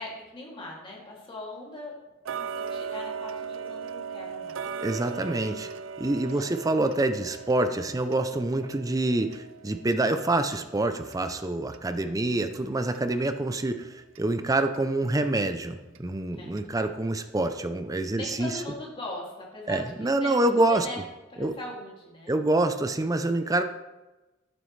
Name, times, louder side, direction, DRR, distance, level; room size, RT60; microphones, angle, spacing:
voice 1, 0.0-2.0 2.4-4.6 6.3-6.5 16.3-16.6 18.1-21.0 21.3-22.4, left 2 dB, 25° left, -4 dB, 2.7 m, -40 dB
Tick-tock, 2.2-13.1 13.5-13.6 14.1-14.2 14.7-14.8 15.4-15.5 15.9-16.0 16.6-16.7 17.2-17.3, right 6 dB, 80° right, 0.5 m, -39 dB
voice 2, 4.8-5.7 6.0-18.6 19.7-20.9 21.4-21.5 22.3-23.6, right 2 dB, 15° right, 8 dB, 0.5 m, -26 dB
11.0 x 9.3 x 3.3 m, 1.1 s
head